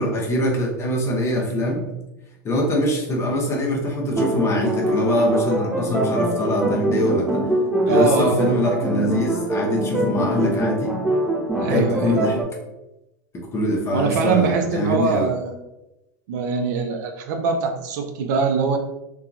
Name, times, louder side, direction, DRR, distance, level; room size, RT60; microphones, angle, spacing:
voice 1, 0.0-1.9 2.4-7.5 7.8-11.0 11.5-12.4 13.3-15.3, left 1 dB, 25° left, 0 dB, 0.7 m, -23 dB
sound 1, 4.1-12.4, right 1 dB, 10° right, 0.4 m, -23 dB
voice 2, 7.8-8.5 11.6-12.2 13.9-15.6 16.3-18.8, right 5 dB, 70° right, 4 dB, 0.4 m, -23 dB
2.7 x 2.3 x 2.4 m, 0.94 s
hypercardioid pair, 105°, 10 cm